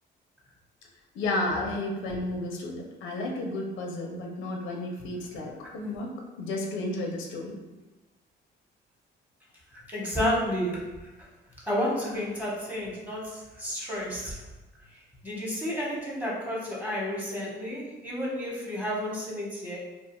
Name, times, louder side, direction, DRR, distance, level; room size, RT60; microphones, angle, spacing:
voice 1, 1.1-6.1 6.4-7.6, left 2 dB, 90° left, 1 dB, 0.5 m, -32 dB
voice 2, 9.9-11.1 11.6-14.4 14.9-19.8, equal, 10° right, -4 dB, 0.9 m, -31 dB
2.5 x 2.3 x 2.9 m, 1.1 s
cardioid pair, 90°, 20 cm